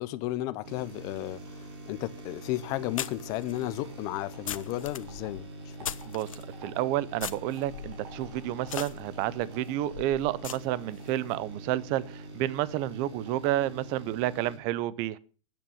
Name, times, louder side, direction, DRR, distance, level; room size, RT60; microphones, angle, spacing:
voice 1, 0.0-5.8, left 16 dB, 20° left, 0.6 m, -34 dB
sound 1, 0.6-14.6, right 1 dB, 50° right, 5.3 m, -44 dB
sound 2, 1.9-2.0 3.0-6.5 7.2-11.1, left 10 dB, 90° left, 1.2 m, -40 dB
voice 2, 6.0-15.2, right 14 dB, 25° right, 0.6 m, -30 dB
12.5 x 9.1 x 7.0 m
supercardioid pair, 170°, 17 cm